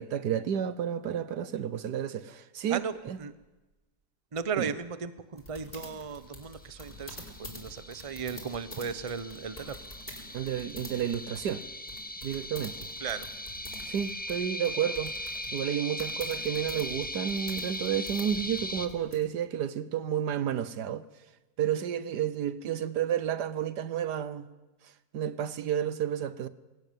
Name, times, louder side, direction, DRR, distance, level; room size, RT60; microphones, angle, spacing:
voice 1, 0.0-3.2 4.6-4.7 10.3-11.6 12.2-12.7 13.9-15.1 15.5-21.0 21.6-24.5 25.1-26.5, right 9 dB, 80° right, 1.6 m, -31 dB
voice 2, 2.7-3.3 4.3-9.9 13.0-13.3, right 6 dB, 25° right, 0.8 m, -36 dB
sound 1, 5.4-19.2, left 1 dB, 25° left, 4.9 m, -47 dB
sound 2, 6.7-18.9, left 1 dB, 5° left, 0.9 m, -39 dB
21.5 x 18.0 x 9.3 m
omnidirectional pair, 1.7 m